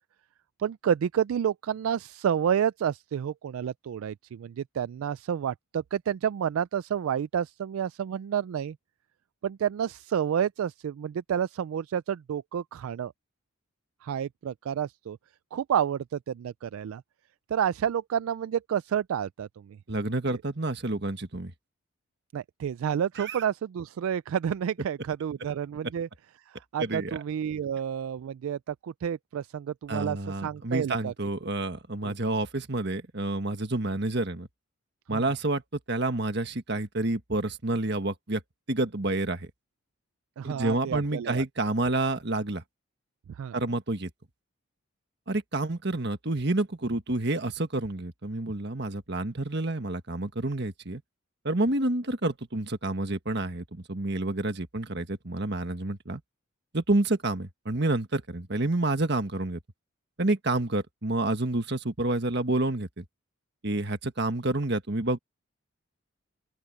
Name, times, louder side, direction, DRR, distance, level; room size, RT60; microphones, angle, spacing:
voice 1, 0.6-8.8 9.4-13.1 14.0-15.2 15.5-17.0 17.5-19.8 22.3-26.1 26.5-31.1 32.0-32.1 35.1-35.2 40.4-41.4 43.4-43.6, right 8 dB, 80° right, 0.3 m, -30 dB
voice 2, 19.9-21.5 23.2-23.4 26.8-27.2 29.9-34.5 35.1-38.4 38.7-39.5 40.4-42.6 43.5-44.1 45.3-51.0 51.4-56.2 56.7-59.6 60.2-63.0 63.6-65.2, right 2 dB, 50° right, 1.6 m, -29 dB
open air
head